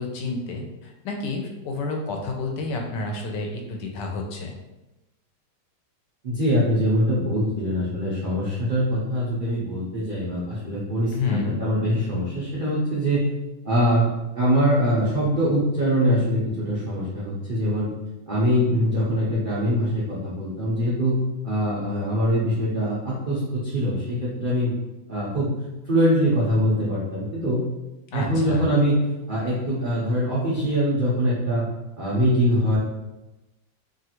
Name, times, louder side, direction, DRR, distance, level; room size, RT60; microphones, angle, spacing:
voice 1, 0.0-4.5 11.1-11.6 28.1-28.7, left 3 dB, 85° left, 2 dB, 1.2 m, -30 dB
voice 2, 6.2-13.3 13.6-14.1 14.4-17.9 18.3-21.2 21.4-24.7 25.1-25.5 25.8-27.6 28.1-29.0 29.3-31.6 32.0-32.8, equal, 70° right, -8 dB, 0.4 m, -23 dB
3.0 x 2.4 x 2.8 m, 1.0 s
omnidirectional pair, 1.9 m